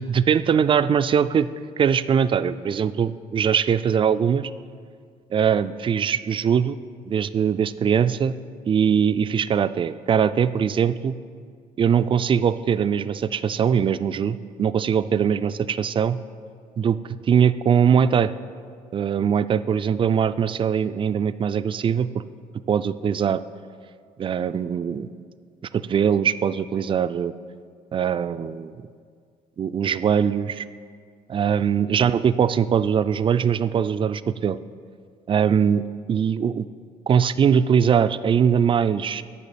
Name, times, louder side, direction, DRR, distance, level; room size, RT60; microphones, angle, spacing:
voice 1, 0.0-1.5 1.8-4.5 5.3-6.8 7.1-8.4 8.7-11.1 11.8-16.2 16.8-17.0 17.3-18.3 18.9-22.2 22.7-23.4 24.2-25.1 25.7-27.3 27.9-28.7 29.6-30.6 31.3-34.6 35.3-36.7 37.1-39.2, right 7 dB, 35° right, 13 dB, 0.3 m, -21 dB
8.3 x 5.5 x 6.9 m, 2.1 s
supercardioid pair, 80°, 15 cm